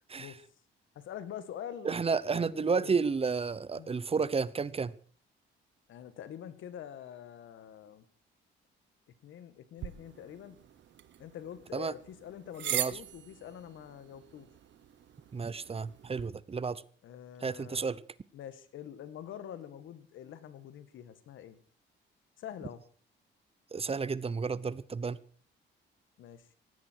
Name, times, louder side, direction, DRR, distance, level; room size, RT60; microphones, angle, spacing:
voice 1, 1.0-3.0 3.8-4.0 5.9-8.0 9.2-10.6 11.2-14.5 17.0-17.8 18.3-21.6 22.4-22.8 26.2-26.5, left 9 dB, 75° left, 13 dB, 1.8 m, -45 dB
voice 2, 1.8-4.9 11.7-11.9 12.7-12.9 15.3-16.8 17.4-18.0 23.7-25.2, right 5 dB, 30° right, 19 dB, 0.8 m, -31 dB
sound 1, 9.8-16.3, right 11 dB, 65° right, 1.3 m, -41 dB
18.0 x 15.5 x 4.7 m, 0.43 s
cardioid pair, 90°, 20 cm